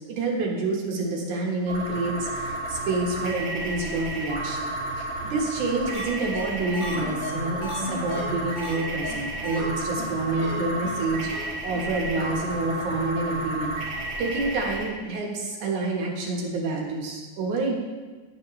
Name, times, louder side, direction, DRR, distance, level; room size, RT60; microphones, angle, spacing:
voice 1, 0.1-4.7 5.0-13.7 14.2-17.8, right 2 dB, 70° right, -1 dB, 2.8 m, -28 dB
sound 1, 1.7-14.8, right 2 dB, 45° right, 3.2 m, -32 dB
sound 2, 5.9-6.0 6.3-6.4 6.7-8.8 9.0-9.2 9.4-9.6 10.0-10.1 10.3-10.5 10.8-10.9 11.2-11.4 11.7-11.8 12.1-12.2, left 2 dB, 75° left, 3.9 m, -35 dB
9.5 x 9.0 x 3.2 m, 1.3 s
omnidirectional pair, 3.7 m